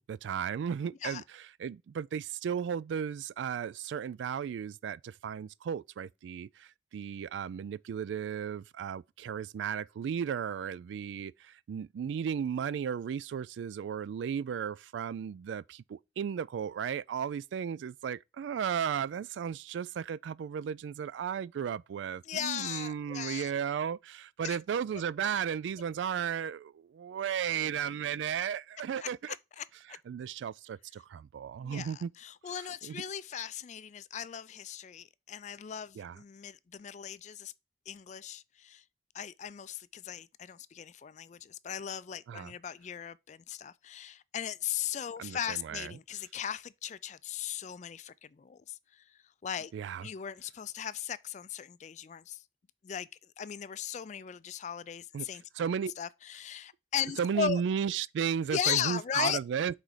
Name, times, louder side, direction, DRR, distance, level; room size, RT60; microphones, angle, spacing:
voice 1, 0.0-29.4 29.9-32.1 32.8-33.0 36.0-36.2 42.3-42.5 45.2-45.9 49.7-50.1 55.1-55.3 55.5-55.9 57.2-59.8, right 8 dB, 85° right, 0.3 m, -35 dB
voice 2, 22.3-23.5 24.4-24.6 29.0-29.6 31.6-37.5 37.9-38.8 39.1-49.0 49.4-49.7 50.0-52.4 52.8-53.1 53.4-55.4 56.0-57.6 58.5-59.4, left 9 dB, 40° left, 0.3 m, -37 dB
6.0 x 4.1 x 4.9 m
head